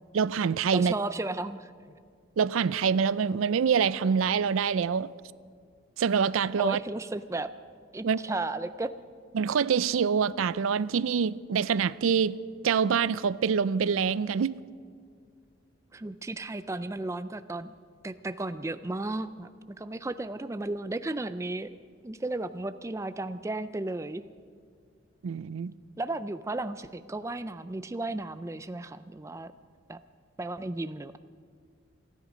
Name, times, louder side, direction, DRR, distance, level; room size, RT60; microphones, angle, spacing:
voice 1, 0.1-0.9 2.4-5.1 6.0-6.8 8.0-8.2 9.3-12.4 12.6-14.6 25.2-25.7, right 6 dB, 90° right, 0.4 m, -25 dB
voice 2, 0.7-1.7 6.6-7.5 7.9-8.9 15.9-17.7 18.0-19.5 19.8-21.7 22.0-24.2 26.0-29.5 29.9-30.0 30.4-31.2, right 2 dB, 15° right, 0.3 m, -34 dB
27.5 x 10.0 x 5.1 m
head